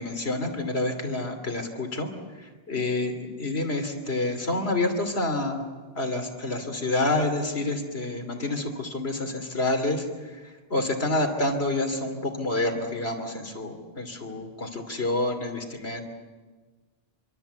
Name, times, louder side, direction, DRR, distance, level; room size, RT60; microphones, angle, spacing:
voice 1, 0.0-2.1 2.4-5.6 5.9-16.0, left 2 dB, 85° left, 5 dB, 3.2 m, -28 dB
26.0 x 24.5 x 8.2 m, 1.3 s
omnidirectional pair, 1.0 m